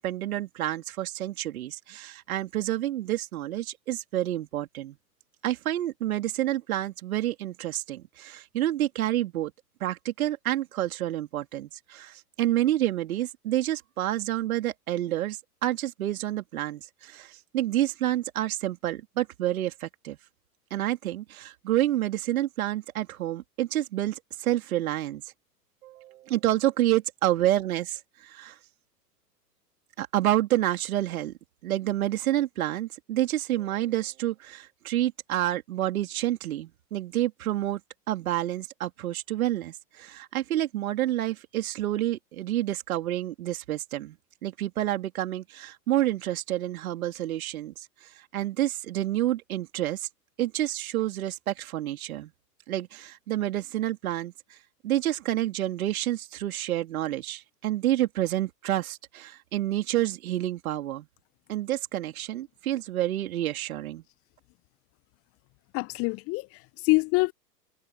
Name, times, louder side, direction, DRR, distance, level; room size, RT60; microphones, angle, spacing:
voice 1, 0.0-5.0 5.4-9.5 9.8-20.2 20.7-25.2 25.8-28.6 30.0-31.3 31.6-37.8 38.1-44.2 44.4-50.1 50.4-52.3 52.7-54.6 54.8-61.1 61.5-64.0, right 13 dB, 55° right, 3.5 m, -29 dB
voice 2, 65.7-67.3, left 25 dB, 30° left, 0.9 m, -25 dB
figure-of-eight pair, 105°, 49 cm